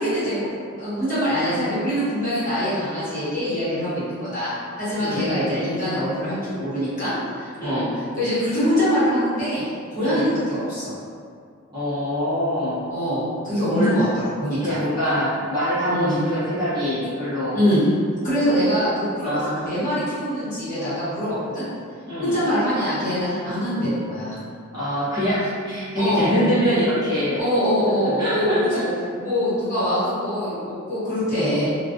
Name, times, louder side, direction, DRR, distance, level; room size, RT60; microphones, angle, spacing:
voice 1, 0.0-11.0 12.9-14.8 15.9-16.1 17.5-17.8 18.2-21.6 22.2-24.4 26.0-26.3 27.4-28.9 29.2-31.7, equal, 40° left, -13 dB, 1.1 m, -24 dB
voice 2, 5.0-5.3 7.6-7.9 10.0-10.3 11.7-12.8 13.7-14.1 14.6-17.6 19.2-19.8 22.1-22.4 24.7-27.4 28.2-28.8, equal, 20° right, -13 dB, 0.6 m, -24 dB
2.4 x 2.2 x 2.4 m, 2.2 s
head